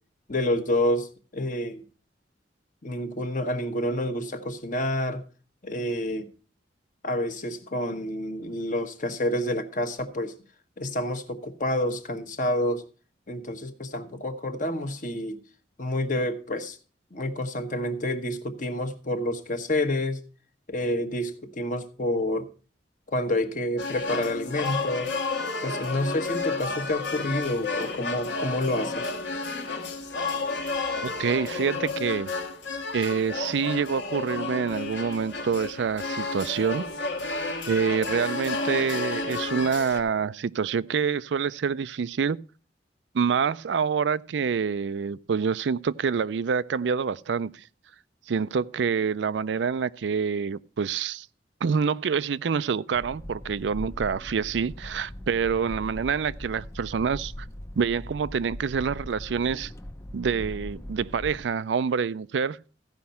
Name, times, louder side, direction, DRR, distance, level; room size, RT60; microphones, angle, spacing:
voice 1, 0.3-1.8 2.8-5.2 5.6-6.3 7.0-10.3 10.8-12.8 13.3-15.4 15.8-16.8 17.1-20.2 20.7-22.5 23.1-25.1 25.6-29.1, left 1 dB, 45° left, 1.2 m, -28 dB
sound 1, 23.8-40.0, left 3 dB, 90° left, 1.5 m, -31 dB
voice 2, 31.0-32.3 32.9-36.9 37.2-37.4 37.7-42.4 43.1-47.5 48.3-51.3 51.6-57.3 57.8-59.7 60.1-62.6, right 6 dB, 85° right, 0.4 m, -27 dB
sound 2, 52.9-61.4, left 1 dB, 15° left, 0.5 m, -40 dB
15.0 x 5.3 x 5.6 m
head